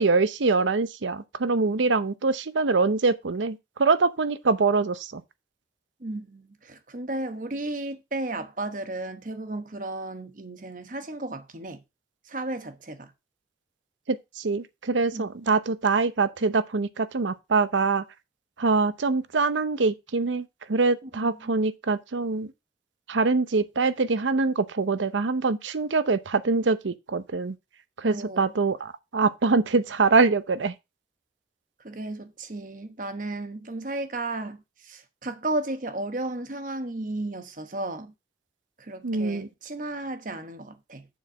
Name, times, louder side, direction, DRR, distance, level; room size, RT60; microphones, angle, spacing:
voice 1, 0.0-5.2 14.1-18.0 18.6-22.5 23.1-27.6 28.0-30.7 39.0-39.5, right 4 dB, 90° right, 0.7 m, -24 dB
voice 2, 6.0-11.8 12.3-13.1 15.1-15.3 21.0-21.5 28.0-28.5 31.8-38.1 38.8-41.1, right 2 dB, 45° right, 1.0 m, -34 dB
7.1 x 4.3 x 6.2 m
head